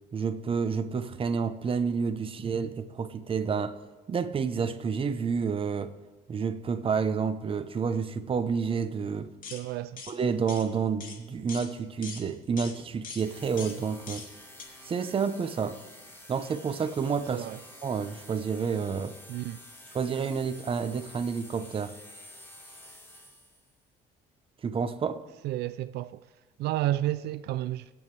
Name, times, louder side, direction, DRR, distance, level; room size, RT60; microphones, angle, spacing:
voice 1, 0.1-3.8 4.1-5.9 6.3-9.3 10.1-14.3 14.8-15.8 16.3-17.5 17.8-19.2 19.9-22.0 24.6-25.2, right 6 dB, 30° right, 0.8 m, -29 dB
sound 1, 9.4-9.6 10.0-10.1 10.5-10.7 11.0-11.2 11.5-11.7 12.0-12.2 12.6-12.7 13.0-13.2 13.6-13.8 14.1-14.3 14.6-14.7, left 5 dB, 55° left, 2.2 m, -41 dB
voice 2, 9.5-10.0 17.3-17.6 19.3-19.6 25.4-26.3 26.6-27.9, right 14 dB, 75° right, 0.4 m, -31 dB
sound 2, 13.2-23.7, left 1 dB, 15° left, 3.0 m, -50 dB
26.5 x 8.9 x 3.3 m
cardioid pair, 110°, 17 cm